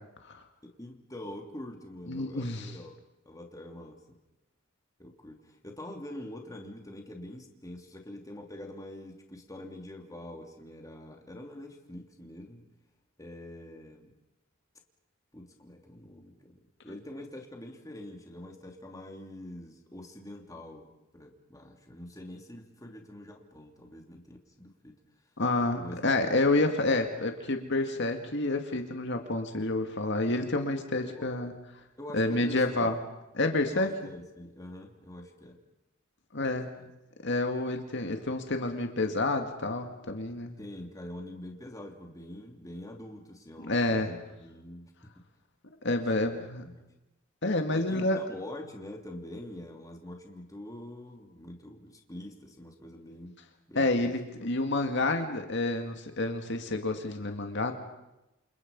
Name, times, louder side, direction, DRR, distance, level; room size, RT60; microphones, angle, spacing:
voice 1, 0.6-2.9 3.2-4.0 5.0-12.6 13.2-14.1 15.3-24.9 25.8-26.0 31.0-31.3 32.0-32.9 33.7-35.6 36.4-36.6 40.6-44.9 46.2-46.9 47.7-53.3 53.7-54.1, left 1 dB, 15° left, 2 dB, 3.0 m, -45 dB
voice 2, 2.1-2.7 25.4-31.5 32.1-33.0 33.3-33.9 36.3-36.7 37.2-40.6 43.6-44.1 45.8-46.6 47.4-48.2 53.7-57.7, left 2 dB, 60° left, 5 dB, 2.1 m, -29 dB
28.5 x 28.0 x 5.4 m, 0.95 s
head